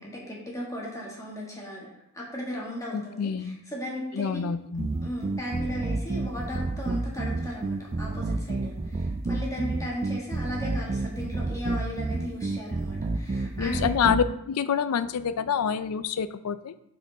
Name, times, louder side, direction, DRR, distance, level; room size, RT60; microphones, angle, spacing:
voice 1, 0.0-4.4 5.0-13.9, equal, 15° left, -4 dB, 1.6 m, -36 dB
voice 2, 2.9-3.6 4.1-4.9 13.6-16.7, left 7 dB, 80° left, 14 dB, 0.4 m, -27 dB
sound 1, 4.8-14.3, right 2 dB, 30° right, 0.3 m, -30 dB
8.2 x 4.4 x 4.0 m, 0.82 s
head